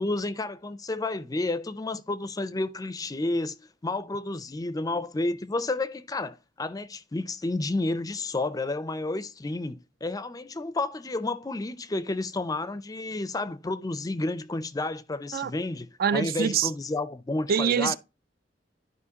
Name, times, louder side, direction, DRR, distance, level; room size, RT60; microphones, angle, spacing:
voice 1, 0.0-3.5 3.8-18.0, left 2 dB, 20° left, 0.4 m, -31 dB
voice 2, 16.0-16.7 17.5-18.0, right 7 dB, 55° right, 0.4 m, -24 dB
12.0 x 4.9 x 2.8 m
head